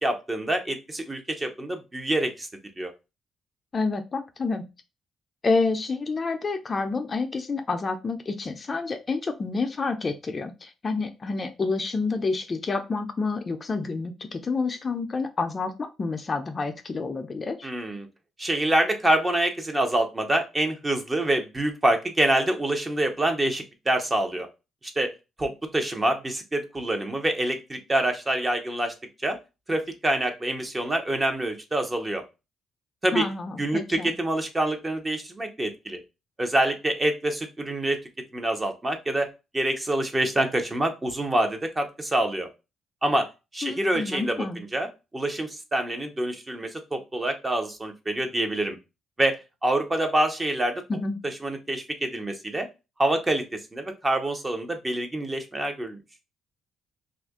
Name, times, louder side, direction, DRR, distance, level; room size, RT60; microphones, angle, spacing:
voice 1, 0.0-2.5 2.8-2.9 17.6-18.1 18.4-24.5 25.0-25.1 25.4-28.9 29.2-29.4 29.7-32.2 33.0-33.3 33.6-36.0 36.4-39.3 39.5-42.5 43.0-43.3 43.5-44.9 45.1-48.8 49.2-50.8 51.2-52.7 53.0-53.5 53.7-56.0, right 1 dB, 20° right, 5 dB, 0.7 m, -26 dB
voice 2, 3.7-4.6 5.4-17.7 33.1-34.1 43.6-44.6 50.9-51.2, left 3 dB, 35° left, 7 dB, 0.4 m, -28 dB
2.7 x 2.5 x 3.5 m, 0.27 s
cardioid pair, 90°, 0 cm